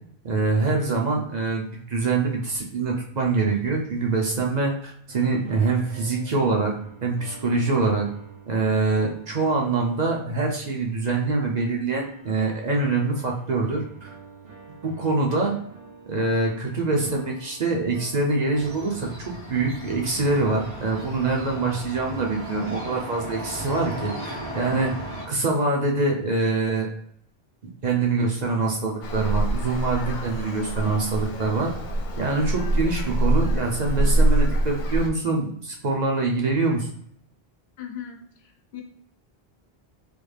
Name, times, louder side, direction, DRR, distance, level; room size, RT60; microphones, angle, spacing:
voice 1, 0.2-6.8 7.0-8.1 8.5-14.1 14.8-15.5 16.1-25.0 25.3-26.9 27.8-31.7 32.2-36.9, right 3 dB, 50° right, 0 dB, 0.6 m, -24 dB
sound 1, 5.1-10.9 11.9-19.3, right 4 dB, 70° right, 1.0 m, -47 dB
sound 2, 18.5-25.2, right 1 dB, 90° right, 1.4 m, -36 dB
Traffic noise roadway noise, 29.0-35.1, right 1 dB, 60° left, 0.6 m, -24 dB
voice 2, 37.8-38.8, left 9 dB, 80° left, 2 dB, 0.9 m, -39 dB
3.4 x 2.2 x 3.2 m, 0.67 s
omnidirectional pair, 1.0 m